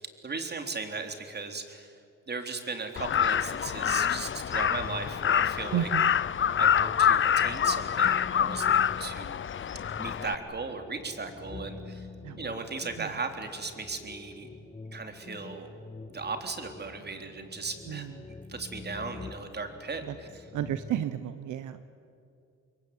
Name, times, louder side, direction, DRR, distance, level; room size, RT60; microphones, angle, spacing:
voice 1, 0.0-1.9 2.3-5.9 6.6-9.7 10.0-12.1 12.4-14.5 14.9-15.7 16.1-18.1 18.5-20.5, right 4 dB, 35° right, 6 dB, 3.7 m, -37 dB
Crow, 3.0-10.3, left 9 dB, 40° left, 0.8 m, -26 dB
sound 1, 3.9-21.1, left 3 dB, 20° left, 1.0 m, -46 dB
voice 2, 5.7-6.1 12.2-12.5 13.0-13.1 17.9-18.1 20.1-20.2 20.5-21.9, right 11 dB, 75° right, 11 dB, 1.2 m, -32 dB
27.5 x 22.5 x 9.6 m, 2.5 s
cardioid pair, 90°, 30 cm